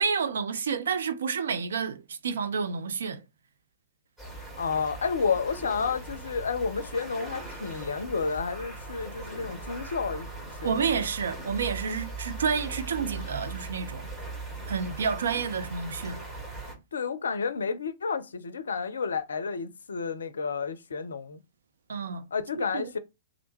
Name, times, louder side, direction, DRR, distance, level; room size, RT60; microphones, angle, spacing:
voice 1, 0.0-3.2 10.6-14.1 14.7-16.2 21.9-22.2 22.6-22.9, right 6 dB, 60° right, 0.4 m, -29 dB
sound 1, 4.2-16.7, right 3 dB, 15° right, 1.7 m, -40 dB
voice 2, 4.6-10.3 10.6-10.9 16.9-21.4 22.3-23.0, left 5 dB, 65° left, 0.4 m, -31 dB
3.3 x 2.5 x 3.0 m
figure-of-eight pair, 105°, 0 cm